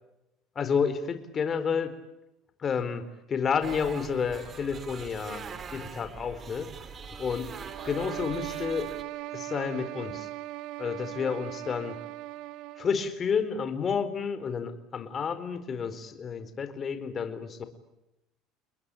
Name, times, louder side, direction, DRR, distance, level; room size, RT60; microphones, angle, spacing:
voice 1, 0.6-1.9 2.6-6.7 7.2-7.5 7.9-8.9 9.3-10.3 10.8-12.0 12.8-17.6, left 6 dB, 30° left, 10 dB, 4.3 m, -30 dB
sound 1, 3.6-9.0, right 6 dB, 30° right, 3.1 m, -42 dB
sound 2, 7.6-13.0, right 16 dB, 65° right, 1.4 m, -39 dB
30.0 x 21.5 x 8.5 m, 0.91 s
cardioid pair, 140°, 0 cm